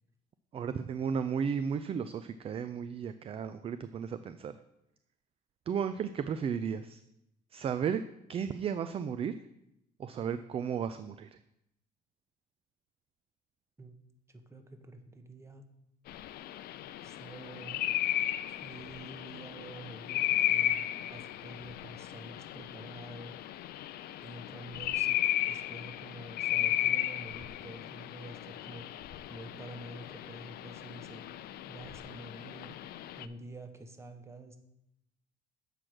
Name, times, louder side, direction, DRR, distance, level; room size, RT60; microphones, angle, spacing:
voice 1, 0.5-4.6 5.7-7.0 7.5-8.0 8.3-9.3 10.0-11.3, right 7 dB, 35° right, 12 dB, 0.3 m, -34 dB
voice 2, 14.3-15.7 17.0-18.0 18.5-23.3 24.2-25.2 25.5-28.9 29.3-31.3 31.7-32.8 33.2-34.6, right 2 dB, 15° right, 6 dB, 1.0 m, -48 dB
sound 1, 16.1-33.3, left 13 dB, 65° left, 0.4 m, -35 dB
7.4 x 5.0 x 6.1 m, 0.83 s
cardioid pair, 110°, 17 cm